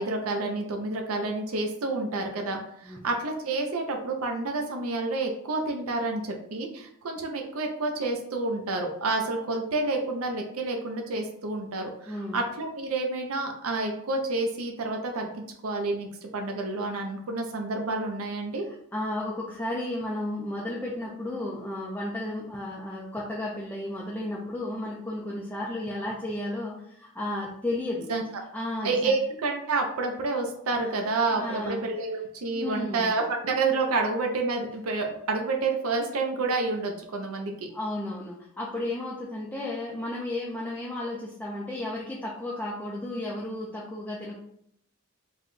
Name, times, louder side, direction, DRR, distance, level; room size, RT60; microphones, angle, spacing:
voice 1, 0.0-18.6 28.1-28.2 28.8-37.7, right 3 dB, 80° right, 3 dB, 0.6 m, -29 dB
voice 2, 12.1-12.4 18.9-28.1 28.5-29.1 31.3-31.8 32.5-33.1 37.7-44.4, left 1 dB, 10° left, -4 dB, 0.4 m, -33 dB
3.4 x 2.2 x 3.9 m, 0.71 s
head